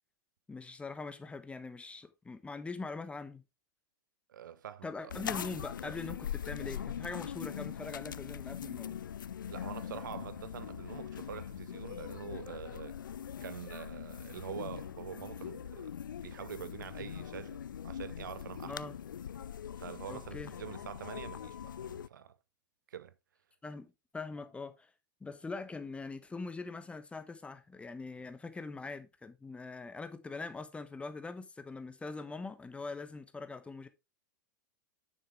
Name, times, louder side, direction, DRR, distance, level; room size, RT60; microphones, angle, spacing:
voice 1, 0.5-3.4 4.8-9.0 18.6-19.0 20.1-20.5 23.6-23.9 24.1-24.9 25.2-33.9, left 3 dB, 10° left, 1.1 m, -42 dB
voice 2, 4.3-5.1 9.5-13.0 13.4-15.9 16.2-18.8 19.8-22.4 22.9-23.1, right 9 dB, 70° right, 0.6 m, -45 dB
sound 1, 5.1-22.1, left 9 dB, 75° left, 0.4 m, -42 dB
9.2 x 7.1 x 3.4 m
figure-of-eight pair, 95°, 11 cm